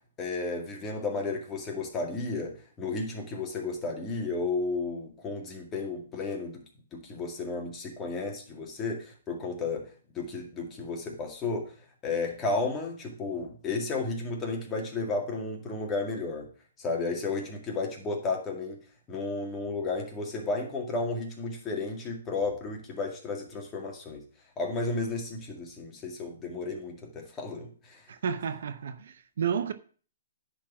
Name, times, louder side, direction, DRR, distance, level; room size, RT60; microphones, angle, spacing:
voice 1, 0.2-6.6 6.9-9.9 10.1-11.7 12.0-16.5 16.8-18.8 19.1-24.2 24.6-28.0, left 3 dB, 20° left, 2.0 m, -33 dB
voice 2, 28.1-29.7, right 7 dB, 70° right, 0.7 m, -31 dB
10.5 x 4.2 x 6.0 m
hypercardioid pair, 150°, 0 cm